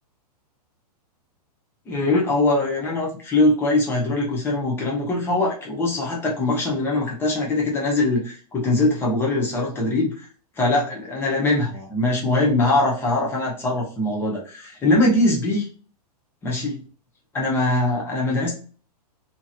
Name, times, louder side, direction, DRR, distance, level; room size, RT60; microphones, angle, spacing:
voice 1, 1.9-10.3 10.6-15.7 16.4-16.8 17.3-18.5, left 2 dB, 10° left, -3 dB, 0.9 m, -22 dB
2.8 x 2.8 x 2.4 m, 0.41 s
hypercardioid pair, 155°, 20 cm